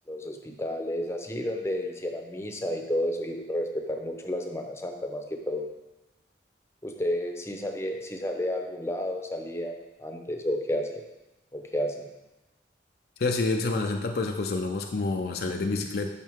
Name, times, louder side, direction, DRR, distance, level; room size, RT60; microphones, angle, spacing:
voice 1, 0.1-5.7 6.8-9.7 10.0-11.0 11.5-12.1, left 1 dB, 15° left, 3 dB, 0.7 m, -31 dB
voice 2, 13.2-16.1, left 3 dB, 60° left, 3 dB, 0.5 m, -28 dB
9.4 x 5.6 x 3.5 m, 1.0 s
head